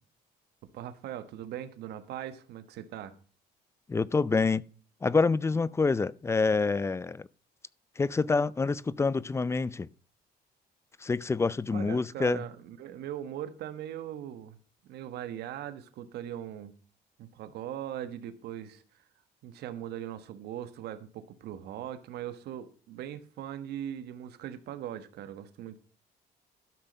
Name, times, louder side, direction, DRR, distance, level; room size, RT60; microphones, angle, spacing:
voice 1, 0.7-3.1 11.7-14.6 14.8-16.7 17.2-19.0 19.4-25.8, right 11 dB, 75° right, 1.3 m, -40 dB
voice 2, 3.9-4.6 5.0-7.3 8.0-9.9 11.0-12.4, left 4 dB, 15° left, 0.4 m, -27 dB
12.5 x 6.0 x 5.3 m
cardioid pair, 110°, 17 cm